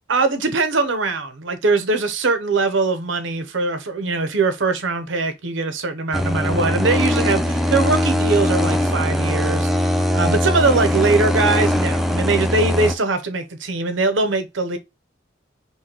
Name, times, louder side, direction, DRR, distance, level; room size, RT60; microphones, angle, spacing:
voice 1, 0.1-14.8, right 3 dB, 85° right, 0.8 m, -21 dB
sound 1, 6.1-12.9, left 1 dB, ahead, 0.4 m, -20 dB
5.4 x 2.2 x 2.9 m
head